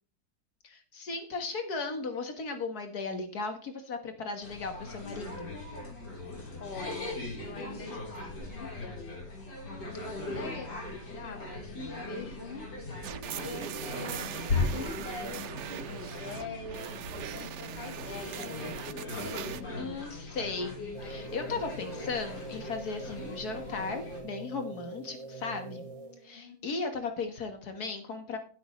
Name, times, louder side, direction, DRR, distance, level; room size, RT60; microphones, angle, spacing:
voice 1, 0.6-5.5 19.8-20.8 21.0-25.8 26.2-28.4, left 4 dB, 70° left, 6 dB, 2.0 m, -36 dB
sound 1, 4.4-24.2, left 3 dB, 90° left, 4.3 m, -39 dB
voice 2, 6.6-9.2 9.9-12.9 13.3-16.9 17.3-18.5 26.3-26.8, left 3 dB, 40° left, 6 dB, 1.8 m, -44 dB
sound 2, 13.0-19.6, right 11 dB, 70° right, 0.7 m, -41 dB
sound 3, 20.9-26.4, right 3 dB, 30° right, 0.7 m, -44 dB
13.0 x 9.5 x 3.1 m, 0.41 s
omnidirectional pair, 1.7 m